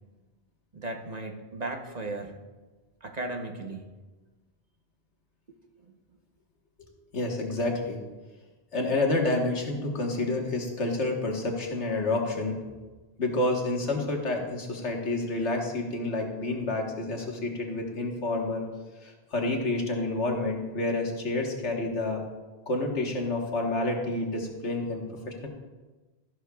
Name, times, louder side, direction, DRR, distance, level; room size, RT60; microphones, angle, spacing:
voice 1, 0.7-2.4 3.0-3.9 5.5-5.6 5.9-6.0, right 2 dB, 40° right, 3 dB, 0.9 m, -36 dB
voice 2, 7.1-8.0 8.7-12.6 13.2-18.6 19.0-22.2 22.7-25.5, left 2 dB, 85° left, 1 dB, 1.8 m, -29 dB
13.0 x 11.5 x 2.3 m, 1.3 s
omnidirectional pair, 1.1 m